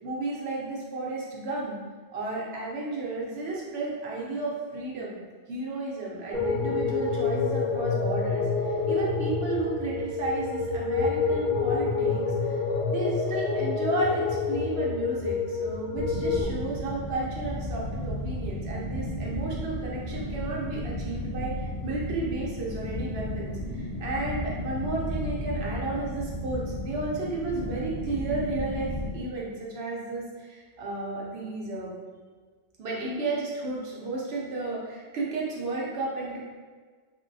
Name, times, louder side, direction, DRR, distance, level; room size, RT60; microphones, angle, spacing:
voice 1, 0.0-1.8 2.1-5.2 5.5-12.6 12.9-21.5 21.8-31.9 32.8-36.4, right 2 dB, 80° right, -4 dB, 1.0 m, -33 dB
sound 1, 6.3-16.4, left 4 dB, 40° right, 0.8 m, -27 dB
sound 2, 15.9-29.1, left 1 dB, 80° left, 1.1 m, -34 dB
3.1 x 2.7 x 2.6 m, 1.5 s
omnidirectional pair, 1.0 m